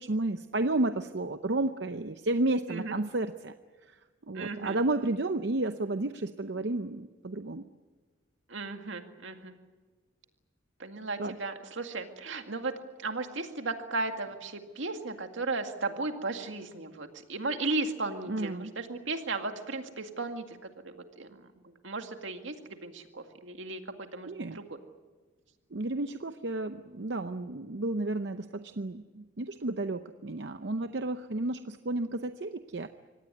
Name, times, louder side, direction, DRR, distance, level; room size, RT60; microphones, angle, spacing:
voice 1, 0.0-3.5 3.8-4.0 4.3-7.6 11.2-11.4 18.3-18.7 24.2-24.6 25.7-32.9, right 2 dB, 60° right, 9 dB, 0.7 m, -32 dB
voice 2, 4.3-4.8 8.5-9.5 10.8-12.7 13.0-24.7, right 3 dB, 80° right, 5 dB, 2.1 m, -36 dB
25.0 x 18.5 x 9.7 m, 1.4 s
head